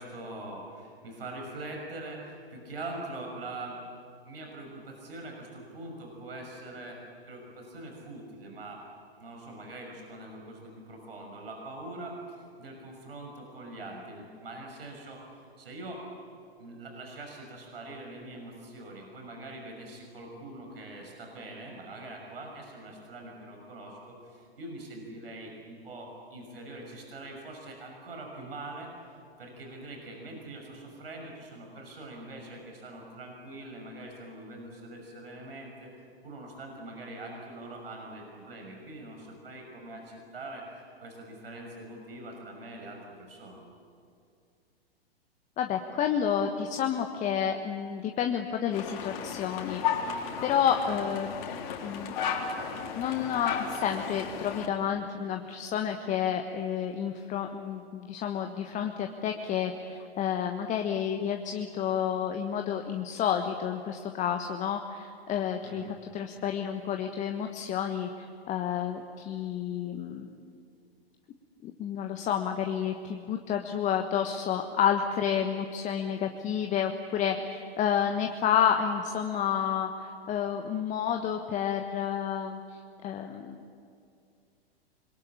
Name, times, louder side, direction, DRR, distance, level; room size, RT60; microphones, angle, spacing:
voice 1, 0.0-3.8 4.2-7.0 7.3-8.8 9.2-16.0 16.6-28.9 29.4-35.9 36.2-40.7 41.0-43.6 65.6-65.9, right 2 dB, 65° right, 1 dB, 6.1 m, -43 dB
voice 2, 45.6-51.3 51.8-52.2 52.9-70.3 71.6-83.6, left 8 dB, 25° left, 5 dB, 1.3 m, -30 dB
sound 1, 48.7-54.7, left 7 dB, 50° left, 3.6 m, -34 dB
26.5 x 22.5 x 8.8 m, 2.4 s
figure-of-eight pair, 105°, 31 cm